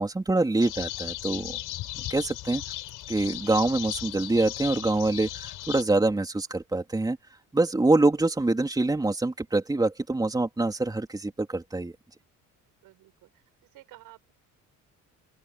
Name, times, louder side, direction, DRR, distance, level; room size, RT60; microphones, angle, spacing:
voice 1, 0.0-1.6 2.1-2.6 3.1-7.2 7.5-11.9, right 2 dB, 10° right, 3.8 m, -25 dB
sound 1, 0.6-5.8, left 15 dB, 75° left, 5.9 m, -36 dB
voice 2, 12.8-13.4 13.7-14.3, right 16 dB, 85° right, 7.1 m, -52 dB
open air
cardioid pair, 125°, 32 cm